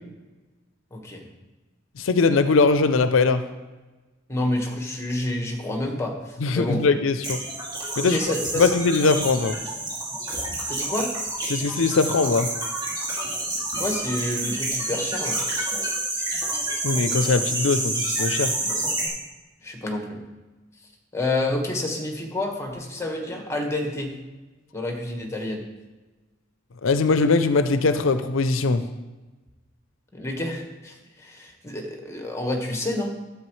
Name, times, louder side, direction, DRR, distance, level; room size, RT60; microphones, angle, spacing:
voice 1, 0.9-1.2 4.3-6.8 8.0-8.7 10.7-11.1 13.8-15.4 19.6-20.2 21.1-24.2 24.7-25.6 30.1-33.1, left 1 dB, 15° left, 1 dB, 1.5 m, -29 dB
voice 2, 2.0-3.4 6.4-7.4 8.0-8.2 8.6-9.6 11.5-12.5 16.8-18.5 26.8-28.8, left 4 dB, 90° left, 11 dB, 0.5 m, -21 dB
sound 1, 7.2-19.1, right 2 dB, 20° right, 2.5 m, -28 dB
12.5 x 7.9 x 3.2 m, 1.2 s
head